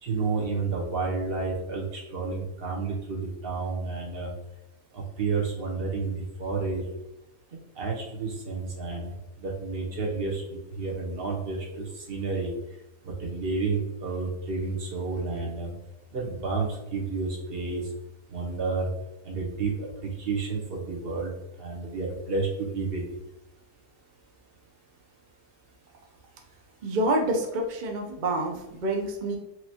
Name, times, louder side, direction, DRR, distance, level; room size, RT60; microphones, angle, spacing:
voice 1, 0.0-4.3 4.9-6.8 7.8-9.1 9.4-12.5 13.1-15.7 16.1-17.8 18.3-18.9 19.2-19.9 20.2-21.3 21.6-23.1, right 4 dB, 45° right, -1 dB, 1.0 m, -30 dB
voice 2, 26.8-29.4, right 1 dB, 85° right, 2 dB, 0.4 m, -27 dB
4.6 x 3.0 x 2.8 m, 0.94 s
omnidirectional pair, 1.7 m